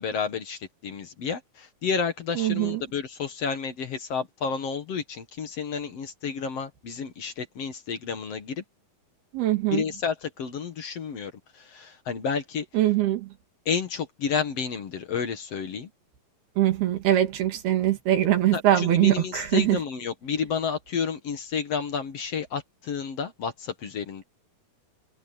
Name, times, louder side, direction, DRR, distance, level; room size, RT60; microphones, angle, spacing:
voice 1, 0.0-8.6 9.7-12.7 13.7-15.9 18.5-24.2, left 6 dB, 50° left, 2.1 m, -31 dB
voice 2, 2.4-2.8 9.3-9.8 12.7-13.3 16.6-19.8, right 13 dB, 85° right, 4.1 m, -22 dB
omnidirectional pair, 4.4 m